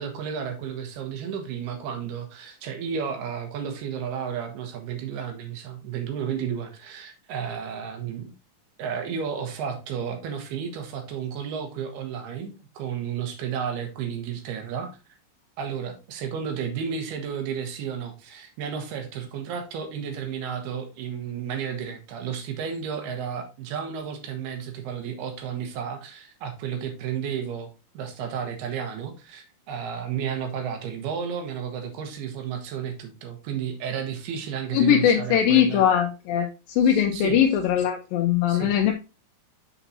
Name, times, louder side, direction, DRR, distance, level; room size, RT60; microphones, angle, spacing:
voice 1, 0.0-8.3 8.8-14.9 15.6-27.7 27.9-35.8 36.8-37.4 38.5-38.7, right 7 dB, 75° right, 5 dB, 3.2 m, -32 dB
voice 2, 34.7-38.9, left 9 dB, 80° left, 3 dB, 2.2 m, -21 dB
7.1 x 7.0 x 2.7 m, 0.29 s
omnidirectional pair, 4.6 m